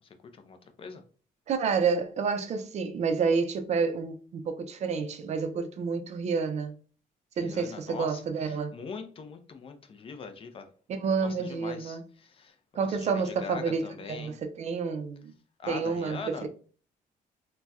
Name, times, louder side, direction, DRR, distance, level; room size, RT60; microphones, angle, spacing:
voice 1, 0.0-1.0 7.3-10.7 11.2-14.4 15.6-16.5, left 5 dB, 35° left, 0.4 m, -42 dB
voice 2, 1.5-6.7 7.4-8.7 10.9-12.0 12.7-15.2 15.7-16.5, right 5 dB, 45° right, 0.4 m, -29 dB
4.0 x 2.1 x 2.3 m
cardioid pair, 140°, 15 cm